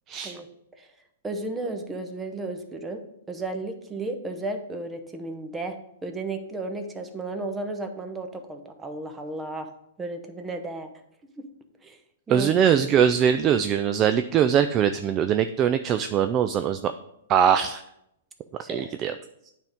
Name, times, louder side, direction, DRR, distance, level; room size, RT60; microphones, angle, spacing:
voice 1, 0.1-0.4 12.3-16.9 17.3-17.8 18.7-19.1, right 8 dB, 30° right, 9 dB, 0.3 m, -22 dB
voice 2, 1.2-3.0 3.3-5.8 6.0-9.7 10.0-10.9 11.4-11.5 11.8-12.0 12.3-12.5 18.6-18.9, right 2 dB, 10° right, 6 dB, 0.9 m, -33 dB
8.9 x 3.6 x 5.3 m, 0.80 s
hypercardioid pair, 130°, 0 cm